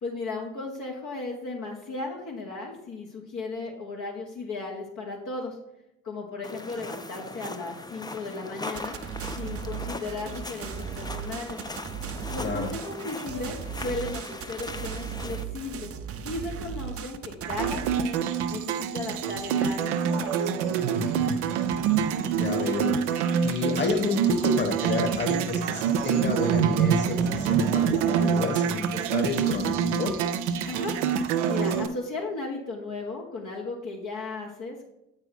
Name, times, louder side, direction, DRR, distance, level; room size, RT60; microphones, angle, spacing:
voice 1, 0.0-5.6 6.0-9.0 9.4-11.6 12.3-15.9 16.2-21.3 30.7-30.9 31.5-34.9, left 3 dB, 60° left, -1 dB, 1.4 m, -36 dB
sound 1, 6.4-15.4, left 2 dB, 10° left, 0.6 m, -39 dB
sound 2, 8.8-18.0, right 8 dB, 40° right, 0.6 m, -37 dB
voice 2, 12.4-12.7 22.3-23.0 23.4-30.1, left 3 dB, 30° left, 4 dB, 1.7 m, -30 dB
sound 3, 17.4-31.9, right 7 dB, 90° right, 0.5 m, -26 dB
7.7 x 4.7 x 4.2 m, 0.87 s
hypercardioid pair, 45°, 35 cm